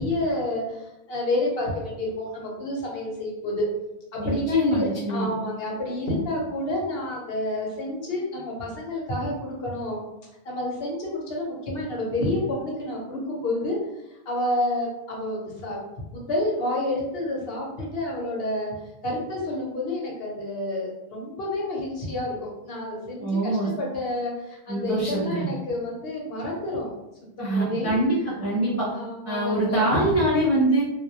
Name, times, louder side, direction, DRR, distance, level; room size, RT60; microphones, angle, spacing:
voice 1, 0.0-3.7 4.2-10.0 10.4-13.8 14.3-15.8 16.1-18.7 19.0-22.4 22.6-27.0 27.4-28.0 28.9-30.3, left 1 dB, 65° left, -3 dB, 0.8 m, -29 dB
voice 2, 4.2-5.3 23.2-23.7 24.7-25.4 27.4-28.9 29.2-30.8, right 1 dB, 20° right, -8 dB, 0.4 m, -24 dB
2.2 x 2.0 x 2.8 m, 0.90 s
omnidirectional pair, 1.1 m